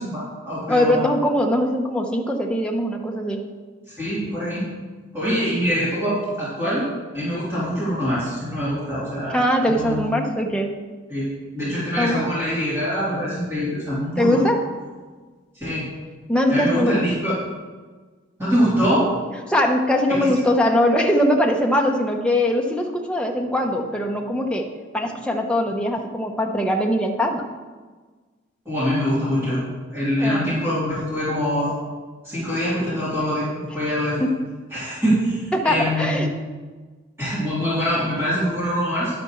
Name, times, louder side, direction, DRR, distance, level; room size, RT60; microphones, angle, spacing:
voice 1, 0.0-1.0 4.0-4.7 5.1-6.8 7.1-9.4 9.7-10.2 11.1-14.4 15.5-15.9 16.5-17.3 18.4-19.1 20.1-20.3 28.6-31.7 32.2-33.5 33.7-34.2 34.7-36.3 37.2-39.2, equal, 10° right, -11 dB, 3.1 m, -24 dB
voice 2, 0.7-3.5 9.3-10.8 12.0-12.2 14.2-14.6 16.3-17.4 19.5-24.7 24.9-27.5 30.2-30.6 34.2-34.4 35.5-36.3, left 1 dB, 5° left, 1 dB, 0.8 m, -21 dB
10.5 x 9.3 x 3.1 m, 1.4 s
head